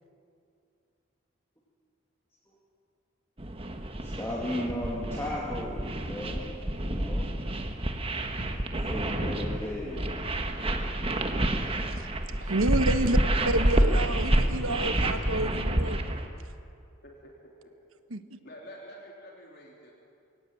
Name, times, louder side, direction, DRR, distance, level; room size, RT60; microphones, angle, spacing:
sound 1, 3.4-16.3, right 1 dB, 25° right, 1.4 m, -28 dB
voice 1, 4.0-7.3 8.7-10.1, left 1 dB, 10° left, 2.6 m, -35 dB
voice 2, 12.4-13.2 13.4-16.0 18.1-18.2, right 2 dB, 90° right, 1.2 m, -29 dB
voice 3, 13.5-14.5 17.0-17.1 17.4-17.5 18.4-19.9, equal, 50° left, 3.4 m, -48 dB
21.5 x 18.0 x 9.2 m
head